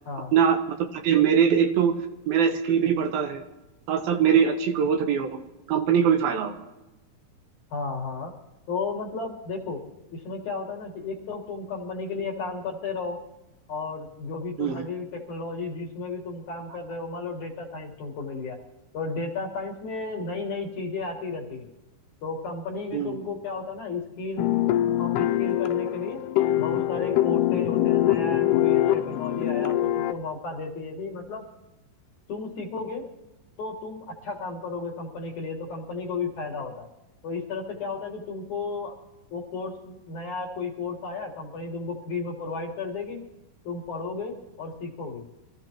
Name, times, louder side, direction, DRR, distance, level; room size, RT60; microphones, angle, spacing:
voice 1, 0.9-2.0 2.3-3.4 3.9-5.4 5.7-6.5 14.6-14.9 22.9-23.2, right 7 dB, 70° right, 5 dB, 2.7 m, -22 dB
voice 2, 7.7-8.3 8.7-9.8 10.1-13.2 13.7-18.6 18.9-21.6 22.2-24.5 25.0-26.2 26.6-31.4 32.3-33.1 33.6-36.9 37.2-38.9 39.3-43.2 43.6-45.2, left 4 dB, 55° left, 0 dB, 2.6 m, -33 dB
sound 1, 24.4-30.1, left 13 dB, 85° left, 2.7 m, -23 dB
24.5 x 14.5 x 3.0 m, 1.0 s
omnidirectional pair, 4.6 m